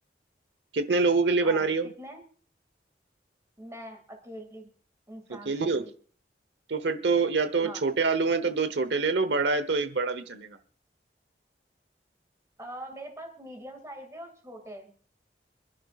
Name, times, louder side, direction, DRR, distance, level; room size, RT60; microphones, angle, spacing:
voice 1, 0.7-1.9 5.5-5.8 6.7-10.6, right 4 dB, 80° right, 11 dB, 1.0 m, -25 dB
voice 2, 1.4-2.2 3.6-4.7 5.1-5.9 7.6-7.9 12.6-14.9, right 1 dB, 15° right, 3 dB, 2.2 m, -43 dB
28.0 x 10.5 x 2.4 m, 0.43 s
head